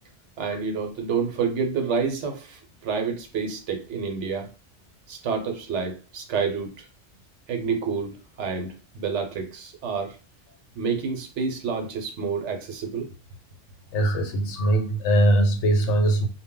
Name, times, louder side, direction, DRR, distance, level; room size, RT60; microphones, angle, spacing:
voice 1, 0.4-4.5 5.1-6.8 7.5-10.2 10.8-13.1, right 5 dB, 75° right, 0.9 m, -28 dB
voice 2, 13.9-16.3, right 1 dB, 75° left, 0.9 m, -21 dB
2.1 x 2.0 x 3.6 m
omnidirectional pair, 1.2 m